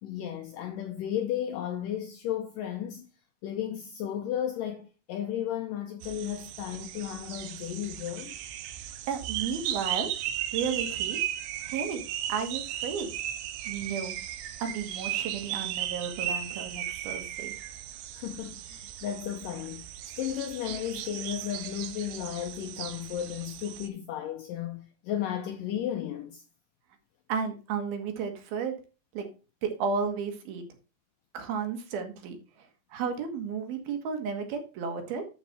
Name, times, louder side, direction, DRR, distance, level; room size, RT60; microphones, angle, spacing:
voice 1, 0.0-3.1 3.4-8.4 18.1-19.8 20.2-26.4, left 10 dB, 80° left, 1.9 m, -34 dB
sound 1, 6.0-23.9, right 11 dB, 85° right, 2.9 m, -36 dB
voice 2, 9.1-10.1 10.5-11.2 11.6-12.0 12.3-13.1 13.7-14.2 14.6-17.5 27.3-28.8 29.1-29.2 29.6-30.6 31.3-35.2, right 6 dB, 70° right, 3.3 m, -33 dB
12.0 x 5.3 x 4.1 m
omnidirectional pair, 4.7 m